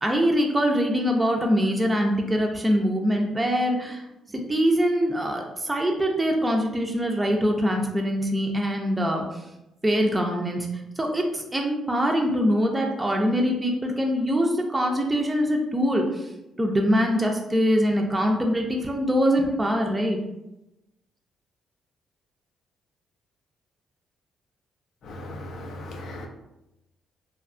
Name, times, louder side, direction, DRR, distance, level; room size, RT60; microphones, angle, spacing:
voice 1, 0.0-4.0 4.3-9.2 9.8-10.7 11.0-16.3 16.6-20.2, equal, 15° right, 1 dB, 0.4 m, -23 dB
voice 2, 25.0-26.3, left 1 dB, 70° left, 3 dB, 0.4 m, -37 dB
2.7 x 2.2 x 2.4 m, 0.93 s
cardioid pair, 90°, 0 cm